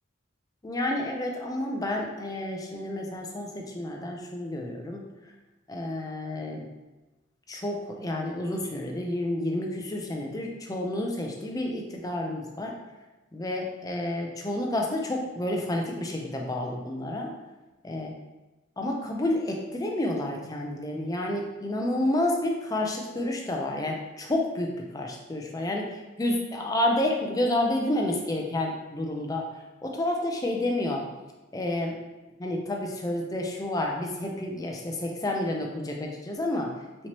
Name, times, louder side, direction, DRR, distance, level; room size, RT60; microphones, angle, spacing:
voice 1, 0.6-5.0 5.7-6.6 7.5-12.7 13.3-17.3 17.8-18.1 18.8-24.7 24.9-29.5 29.8-31.0 31.5-32.0 32.4-36.7, left 1 dB, 20° left, 1 dB, 0.4 m, -30 dB
4.3 x 2.9 x 2.9 m, 1.1 s
head